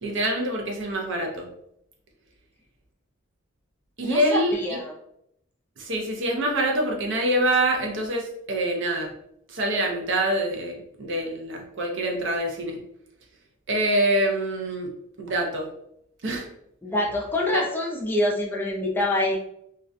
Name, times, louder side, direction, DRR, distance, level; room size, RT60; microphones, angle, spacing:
voice 1, 0.0-1.5 4.0-4.8 5.8-9.1 9.5-12.8 13.7-14.9 15.2-15.7 16.2-16.5 17.5-17.6, right 1 dB, 65° right, 1 dB, 0.5 m, -25 dB
voice 2, 4.0-4.9 16.8-19.3, left 1 dB, 10° left, -2 dB, 0.4 m, -25 dB
2.3 x 2.1 x 2.5 m, 0.74 s
head